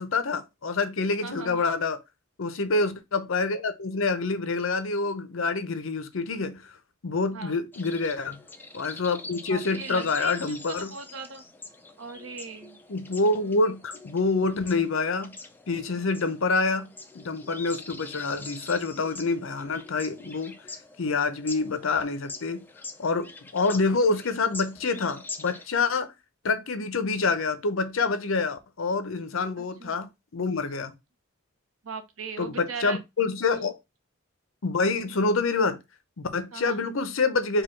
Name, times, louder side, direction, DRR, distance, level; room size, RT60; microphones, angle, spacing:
voice 1, 0.0-2.0 2.4-6.7 7.0-8.4 8.7-11.0 12.9-15.4 15.7-20.6 21.0-22.7 23.0-26.1 26.4-31.0 32.4-33.7 34.6-35.8 36.2-37.6, left 3 dB, 70° left, 0.7 m, -27 dB
voice 2, 1.2-1.6 7.3-7.6 9.5-10.5 10.9-11.4 12.0-12.8 29.8-30.0 31.8-33.0 36.5-36.8, right 5 dB, 75° right, 0.9 m, -38 dB
sound 1, 7.7-25.7, left 3 dB, 10° left, 0.4 m, -44 dB
4.8 x 2.3 x 4.4 m
head